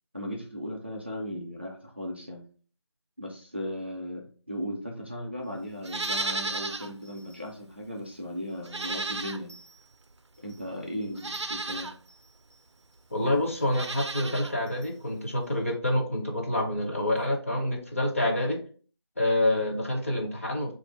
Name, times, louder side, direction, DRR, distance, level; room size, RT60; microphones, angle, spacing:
voice 1, 0.1-2.5 3.2-9.6 10.4-11.9, equal, 25° right, -1 dB, 0.4 m, -37 dB
Livestock farm animals working animals, 5.8-6.9 7.3-7.4 8.6-9.7 10.5-10.6 11.1-11.9 13.6-14.5 14.8-14.9, right 3 dB, 90° right, 0.4 m, -33 dB
voice 2, 13.1-18.6 19.2-20.7, left 1 dB, 30° left, -1 dB, 0.6 m, -27 dB
3.3 x 2.5 x 3.2 m, 0.40 s
figure-of-eight pair, 170°, 14 cm